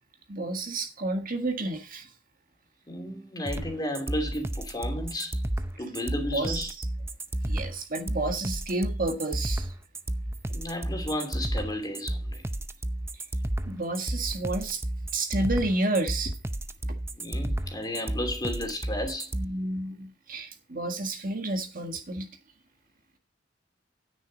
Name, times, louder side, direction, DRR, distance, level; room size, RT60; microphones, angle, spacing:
voice 1, 0.3-2.1 6.3-6.9 7.4-9.7 13.7-14.8 15.1-16.3 19.3-22.3, right 2 dB, 50° right, 1.7 m, -30 dB
voice 2, 2.9-5.4 5.8-6.7 10.5-12.4 17.2-19.3, left 1 dB, 20° left, 2.8 m, -33 dB
sound 1, 3.4-19.4, right 1 dB, 15° right, 0.6 m, -32 dB
9.6 x 9.5 x 4.0 m
head